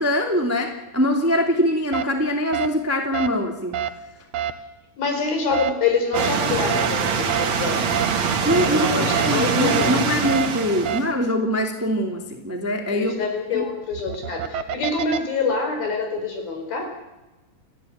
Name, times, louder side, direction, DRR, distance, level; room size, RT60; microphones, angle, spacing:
voice 1, 0.0-3.8 8.4-13.2 13.5-13.6, equal, 5° right, 3 dB, 1.6 m, -23 dB
sound 1, 1.9-2.0 2.5-2.7 3.1-3.3 3.7-3.9 4.3-4.5 5.5-5.7 6.1-6.3 6.7-6.9 7.3-7.5 7.9-8.1 8.5-8.7 9.1-9.3 9.7-9.9 10.2-10.5 10.8-11.0 13.8-15.2, right 10 dB, 85° right, 1.4 m, -26 dB
voice 2, 5.0-7.8 8.4-9.9 12.9-16.8, left 4 dB, 65° left, 4 dB, 6.2 m, -26 dB
sound 2, 6.1-11.1, right 6 dB, 50° right, 2.8 m, -23 dB
29.0 x 11.5 x 9.4 m, 1.1 s
omnidirectional pair, 4.6 m